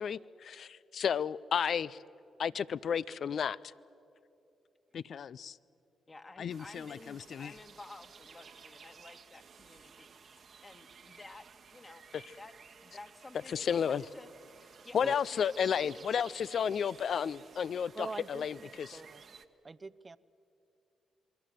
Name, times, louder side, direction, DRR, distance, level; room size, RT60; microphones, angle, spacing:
voice 1, 0.0-2.0 2.4-3.6 4.9-5.6 6.4-7.5 12.1-12.2 13.5-14.0 14.9-19.0, left 7 dB, 65° left, 0.5 m, -32 dB
voice 2, 6.1-11.5 11.7-12.0 12.3-12.5 12.8-14.3 14.6-16.1, left 2 dB, 35° left, 1.8 m, -53 dB
sound 1, 6.5-19.4, right 6 dB, 65° right, 1.3 m, -55 dB
voice 3, 17.9-19.2 19.6-20.2, right 3 dB, 35° right, 0.7 m, -43 dB
28.0 x 22.0 x 7.7 m
supercardioid pair, 55°, 0 cm